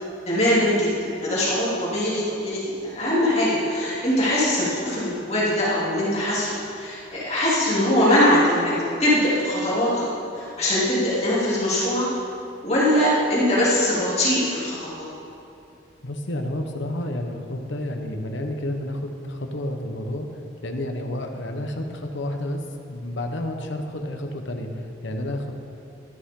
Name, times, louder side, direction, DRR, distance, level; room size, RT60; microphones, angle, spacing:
voice 1, 0.3-0.9 1.2-8.7 9.0-10.0 10.3-12.1 12.6-15.0, left 1 dB, 35° left, -8 dB, 2.9 m, -22 dB
voice 2, 16.0-20.3 20.6-22.6 22.9-25.5, left 1 dB, 75° left, 4 dB, 1.1 m, -30 dB
12.5 x 11.5 x 3.8 m, 2.7 s
head